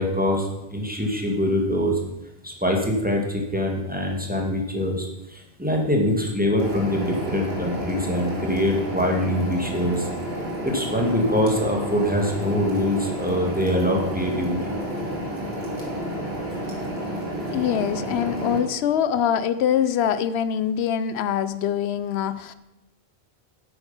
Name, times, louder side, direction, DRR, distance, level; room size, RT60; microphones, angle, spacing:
voice 1, 0.0-2.0 2.4-10.1 10.6-14.7, left 1 dB, 10° right, 0 dB, 1.9 m, -24 dB
sound 1, 6.6-18.6, equal, 80° right, 3.0 m, -31 dB
voice 2, 17.5-22.5, left 9 dB, 90° left, 14 dB, 0.9 m, -24 dB
8.9 x 8.6 x 5.7 m, 0.94 s
omnidirectional pair, 1.0 m